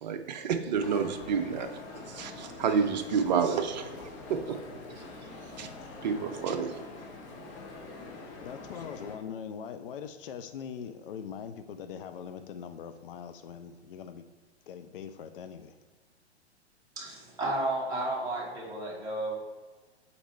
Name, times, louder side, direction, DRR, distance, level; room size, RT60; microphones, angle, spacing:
voice 1, 0.0-3.9 4.3-4.6 5.6-5.7 6.0-6.8, right 6 dB, 40° right, 0.6 m, -29 dB
sound 1, 0.8-9.2, left 3 dB, 20° left, 0.7 m, -44 dB
voice 2, 8.4-14.2 14.7-15.8, left 7 dB, 55° left, 0.5 m, -42 dB
voice 3, 17.0-19.3, right 1 dB, 10° right, 1.2 m, -32 dB
5.2 x 4.2 x 4.3 m
figure-of-eight pair, 110°, 34 cm